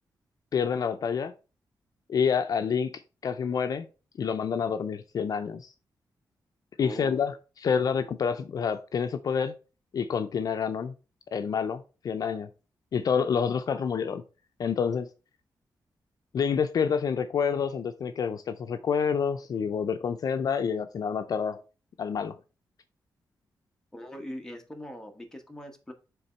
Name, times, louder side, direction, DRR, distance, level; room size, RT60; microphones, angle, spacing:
voice 1, 0.5-1.3 2.1-2.9 3.2-3.9 4.2-5.7 6.8-9.5 9.9-10.9 11.3-12.5 12.9-14.2 14.6-15.1 16.3-21.6 22.0-22.4, left 6 dB, 55° left, 0.5 m, -28 dB
voice 2, 6.8-7.2 23.9-25.9, equal, 5° left, 1.2 m, -41 dB
6.9 x 3.6 x 4.4 m
wide cardioid pair, 140°, 8 cm